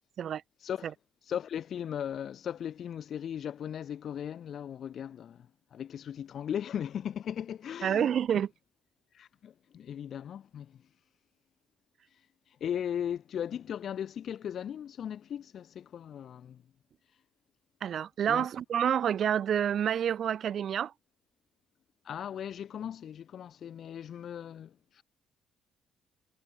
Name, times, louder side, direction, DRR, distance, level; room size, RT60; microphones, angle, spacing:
voice 1, 1.3-8.1 9.1-10.8 12.6-16.6 18.3-18.5 22.0-25.0, left 9 dB, 60° left, 1.4 m, -37 dB
voice 2, 7.8-8.5 17.8-20.9, right 9 dB, 60° right, 0.6 m, -28 dB
supercardioid pair, 80°, 0 cm